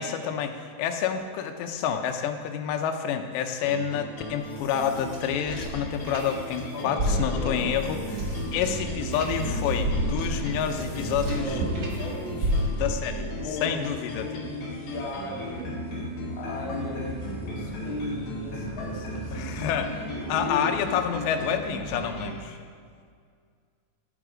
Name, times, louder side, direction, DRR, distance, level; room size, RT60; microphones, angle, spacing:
voice 1, 0.0-11.5 12.3-12.4 12.8-13.3 13.6-14.3 19.3-20.0 20.3-22.6, left 8 dB, 90° left, 6 dB, 3.1 m, -28 dB
sound 1, 3.6-22.4, equal, 55° left, 3.7 m, -37 dB
sound 2, 4.3-6.6 6.9-12.0 12.4-13.1, equal, 45° right, 1.2 m, -31 dB
voice 2, 6.7-7.8 10.9-12.7 13.4-15.7 16.3-19.6 20.4-20.7, left 2 dB, 40° left, -3 dB, 2.0 m, -37 dB
sound 3, 8.4-20.6, right 1 dB, 70° right, 3.6 m, -37 dB
17.0 x 8.8 x 5.0 m, 2.1 s
omnidirectional pair, 4.9 m